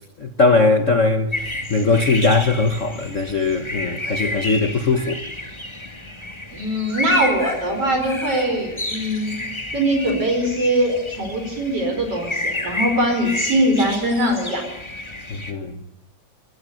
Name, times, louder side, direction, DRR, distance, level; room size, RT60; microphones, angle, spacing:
voice 1, 0.2-5.2 15.3-15.7, left 3 dB, 80° left, 0.6 m, -20 dB
sound 1, 1.3-15.5, left 1 dB, 10° left, 1.6 m, -30 dB
voice 2, 6.5-9.4 9.7-14.6, right 1 dB, 50° right, 5.5 m, -21 dB
22.0 x 19.5 x 9.2 m
omnidirectional pair, 3.3 m